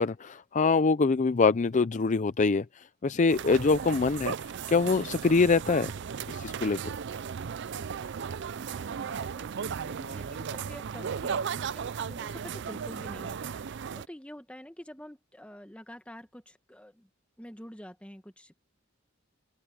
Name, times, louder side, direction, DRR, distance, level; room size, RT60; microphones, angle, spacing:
voice 1, 0.0-4.3 4.7-5.9 6.3-6.8, left 4 dB, 35° left, 0.5 m, -24 dB
sound 1, 3.3-14.1, right 6 dB, 60° right, 0.5 m, -36 dB
voice 2, 8.6-13.4 13.7-17.1 17.4-18.6, equal, 5° left, 1.3 m, -47 dB
open air
head